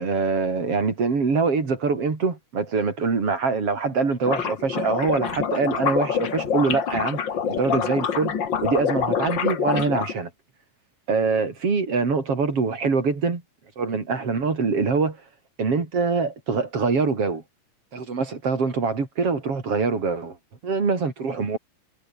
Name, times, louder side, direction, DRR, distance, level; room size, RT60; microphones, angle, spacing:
voice 1, 0.0-7.2 7.6-8.3 8.6-10.3 11.1-13.4 13.8-15.2 15.6-17.4 17.9-20.4 20.6-21.6, right 4 dB, 45° right, 4.7 m, -24 dB
sound 1, 4.2-10.1, left 7 dB, 40° left, 1.9 m, -26 dB
omnidirectional pair, 3.9 m